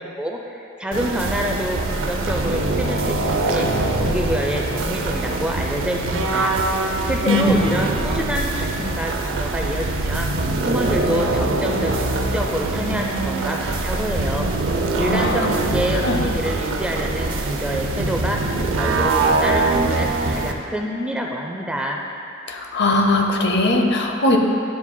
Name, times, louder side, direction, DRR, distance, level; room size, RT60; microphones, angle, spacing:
voice 1, 0.0-6.5 7.0-10.3 10.6-14.5 15.0-22.0, equal, 5° right, 0 dB, 0.4 m, -27 dB
sound 1, 0.9-20.5, right 2 dB, 65° right, 0.6 m, -23 dB
voice 2, 7.3-7.6 15.1-15.4 16.0-16.2 22.5-24.4, left 2 dB, 55° left, 2 dB, 0.7 m, -19 dB
11.0 x 7.1 x 2.2 m, 2.8 s
head